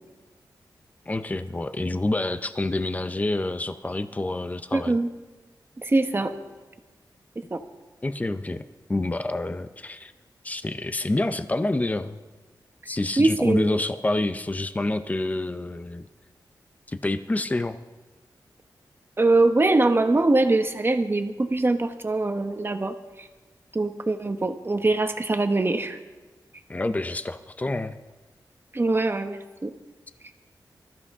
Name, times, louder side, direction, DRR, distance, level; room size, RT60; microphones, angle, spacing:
voice 1, 1.1-5.0 8.0-8.6 8.9-10.1 10.4-12.2 12.9-16.1 16.9-17.8 26.7-28.0, left 2 dB, 20° left, 11 dB, 0.6 m, -27 dB
voice 2, 4.7-5.1 5.8-6.3 7.5-7.6 13.2-13.8 19.2-23.3 23.7-26.0 28.7-29.7, right 2 dB, 30° right, 7 dB, 1.1 m, -23 dB
21.5 x 13.5 x 3.7 m, 1.3 s
wide cardioid pair, 90°, 8 cm